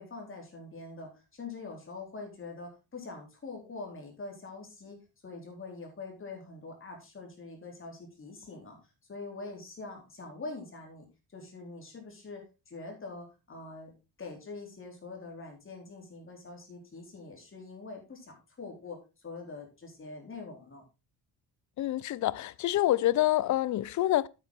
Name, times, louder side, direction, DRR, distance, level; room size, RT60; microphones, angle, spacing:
voice 1, 0.0-5.0 5.2-8.8 9.1-11.1 11.3-13.9 14.2-19.0 19.2-20.8, left 3 dB, 30° left, 4.0 m, -44 dB
voice 2, 21.8-24.3, left 14 dB, 45° left, 0.5 m, -27 dB
9.1 x 8.8 x 4.0 m
cardioid pair, 125°, 40 cm